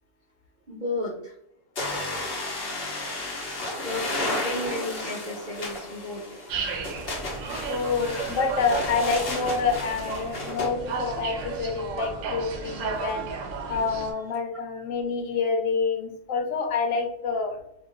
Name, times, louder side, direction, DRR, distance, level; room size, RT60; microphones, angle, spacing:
voice 1, 0.7-1.3 2.7-7.7, left 2 dB, 55° right, -4 dB, 0.5 m, -35 dB
sound 1, 1.8-10.7, left 2 dB, 55° left, 0.9 m, -33 dB
sound 2, 6.5-14.1, right 5 dB, 80° right, 0.9 m, -34 dB
voice 2, 7.7-13.3 13.7-17.6, left 5 dB, 90° left, 3 dB, 1.0 m, -27 dB
2.9 x 2.4 x 2.4 m, 0.77 s
omnidirectional pair, 1.3 m